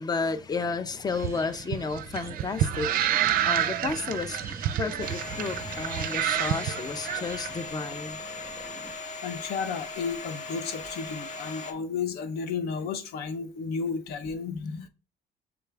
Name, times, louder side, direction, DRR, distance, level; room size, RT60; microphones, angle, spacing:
voice 1, 0.0-2.9 3.4-4.4 4.8-8.2 14.5-14.9, left 4 dB, 25° left, 0.4 m, -32 dB
sound 1, 1.1-8.9, right 3 dB, 15° right, 0.7 m, -45 dB
sound 2, 1.1-7.5, right 11 dB, 60° right, 0.4 m, -29 dB
Domestic sounds home sounds, 5.0-11.7, left 3 dB, 45° left, 0.9 m, -38 dB
voice 2, 9.2-14.6, left 5 dB, 70° left, 0.6 m, -32 dB
6.7 x 2.3 x 3.3 m
cardioid pair, 110°, 17 cm